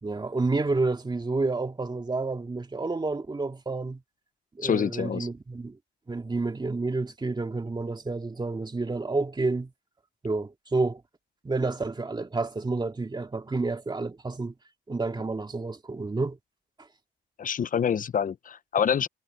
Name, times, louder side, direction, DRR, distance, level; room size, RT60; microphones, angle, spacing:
voice 1, 0.0-4.0 4.5-5.8 6.1-9.7 10.2-11.0 11.4-14.5 14.9-16.4, right 3 dB, 20° right, 2.3 m, -29 dB
voice 2, 4.6-5.3 17.4-19.1, left 8 dB, 40° left, 0.8 m, -26 dB
cardioid pair, 90°, 20 cm